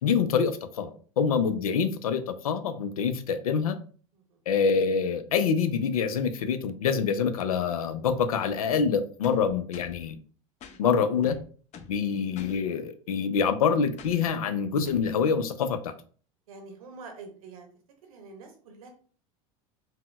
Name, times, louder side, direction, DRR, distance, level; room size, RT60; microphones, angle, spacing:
voice 1, 0.0-3.8 4.5-10.2 10.8-11.4 11.9-15.9, left 6 dB, 90° left, 10 dB, 0.4 m, -26 dB
sound 1, 9.2-10.0 10.6-10.8 11.2-12.0 12.3-12.6 14.0-14.3 14.8-15.1, left 6 dB, 40° left, 0.6 m, -46 dB
voice 2, 16.5-17.7 18.0-18.9, right 4 dB, 80° right, 4 dB, 0.9 m, -46 dB
4.1 x 2.1 x 2.3 m, 0.42 s
hypercardioid pair, 90°, 18 cm